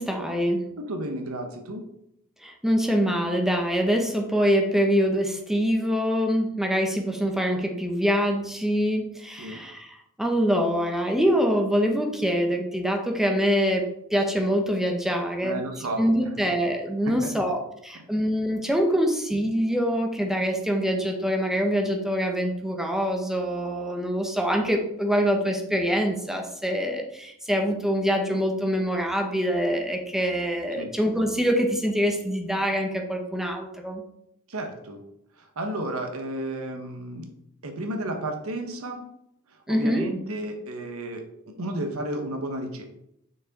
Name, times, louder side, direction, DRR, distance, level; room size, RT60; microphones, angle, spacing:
voice 1, 0.0-0.6 2.4-15.6 16.0-34.0 39.7-40.1, equal, ahead, 2 dB, 0.7 m, -25 dB
voice 2, 0.8-1.8 9.4-9.6 15.4-16.0 17.0-17.3 30.7-30.9 34.5-35.0 35.4-37.3 37.6-39.1 39.7-42.9, right 1 dB, 75° right, 4 dB, 1.0 m, -32 dB
6.5 x 4.6 x 4.0 m, 0.77 s
head